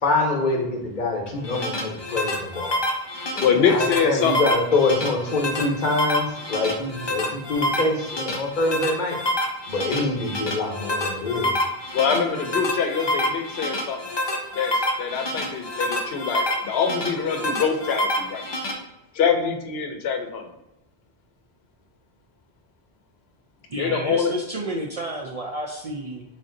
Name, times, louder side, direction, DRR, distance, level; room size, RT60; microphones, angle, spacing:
voice 1, 0.0-2.8 3.3-9.2 9.7-11.5, left 2 dB, 50° left, 0 dB, 0.9 m, -25 dB
sound 1, 1.3-18.7, left 1 dB, 35° left, 0.4 m, -28 dB
voice 2, 3.4-4.4 11.9-14.0 14.5-18.4 19.1-20.5 23.8-24.3, left 6 dB, 80° left, 5 dB, 0.8 m, -24 dB
voice 3, 23.7-26.2, right 1 dB, 50° right, -1 dB, 0.4 m, -31 dB
3.3 x 2.6 x 3.7 m, 0.88 s
omnidirectional pair, 1.0 m